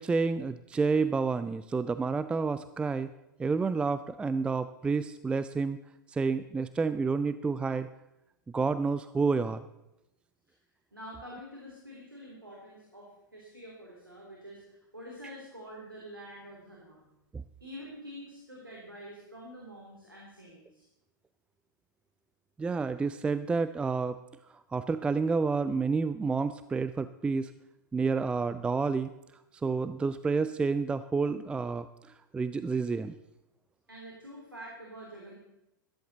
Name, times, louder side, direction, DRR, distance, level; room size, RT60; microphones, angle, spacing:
voice 1, 0.0-3.1 3.4-5.8 6.1-7.9 8.5-9.6 17.3-17.4 22.6-24.2 24.5-27.5 27.9-29.1 29.6-31.9 32.3-33.2, right 4 dB, 10° right, 13 dB, 0.4 m, -29 dB
voice 2, 10.9-17.0 17.6-20.9 33.9-35.4, equal, 85° right, -3 dB, 3.0 m, -47 dB
14.0 x 13.5 x 4.0 m, 0.90 s
figure-of-eight pair, 95°, 11 cm